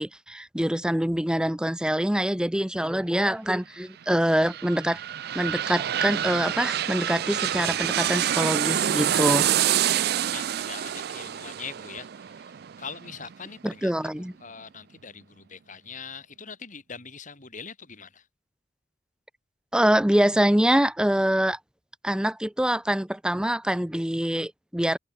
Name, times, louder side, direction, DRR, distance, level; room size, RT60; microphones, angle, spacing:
voice 1, 0.0-5.0 5.3-9.5 13.6-14.3 19.7-21.6 22.0-25.0, right 1 dB, 5° right, 0.6 m, -25 dB
sound 1, 4.1-13.7 14.1-14.2, right 10 dB, 55° right, 0.4 m, -27 dB
voice 2, 9.2-13.9 14.4-18.2, left 6 dB, 40° left, 3.8 m, -43 dB
head